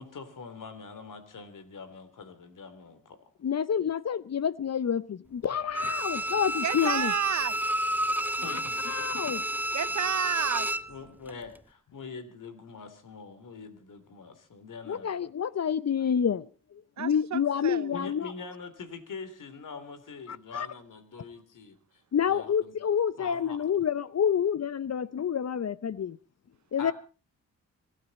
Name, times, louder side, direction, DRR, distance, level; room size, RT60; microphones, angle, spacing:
voice 1, 0.0-3.3 8.4-9.3 10.9-15.3 16.0-16.1 17.9-22.0 22.3-22.7 23.2-23.6 26.8-26.9, left 4 dB, 70° left, 3.5 m, -44 dB
voice 2, 3.4-7.1 8.5-8.6 8.9-9.4 14.9-18.3 20.3-20.7 22.1-26.2 26.7-26.9, left 8 dB, 50° left, 0.7 m, -28 dB
Bowed string instrument, 5.7-10.9 11.3-11.4, right 1 dB, 5° right, 0.8 m, -30 dB
voice 3, 6.6-7.6 8.5-8.6 9.7-10.7 17.0-17.9, right 10 dB, 60° right, 0.7 m, -31 dB
26.0 x 12.5 x 4.2 m
cardioid pair, 65°, 32 cm